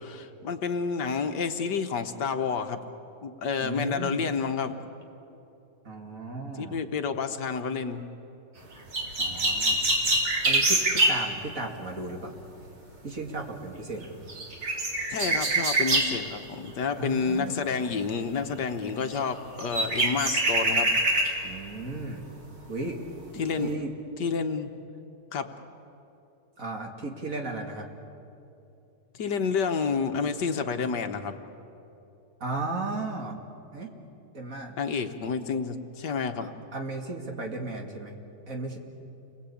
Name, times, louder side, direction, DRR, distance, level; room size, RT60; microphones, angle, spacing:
voice 1, 0.0-2.9 3.2-4.8 6.6-8.1 15.1-20.9 23.4-23.7 24.2-24.7 25.3-25.5 29.1-31.4 34.8-36.5, left 5 dB, 70° left, 7 dB, 1.8 m, -29 dB
voice 2, 3.6-4.2 5.8-6.8 9.2-9.9 10.4-12.3 13.0-14.2 17.0-17.6 21.4-22.3 22.7-23.0 23.6-23.9 26.6-27.9 32.4-33.4 33.7-33.9 34.3-34.7 36.4-38.2 38.5-38.8, right 2 dB, 50° right, 2 dB, 2.7 m, -35 dB
sound 1, 8.9-11.2 14.0-14.1 14.3-16.1 19.1-19.2 19.6-21.4 21.9-22.0, right 2 dB, 80° right, 3.8 m, -24 dB
29.5 x 22.0 x 8.6 m, 2.8 s
omnidirectional pair, 1.9 m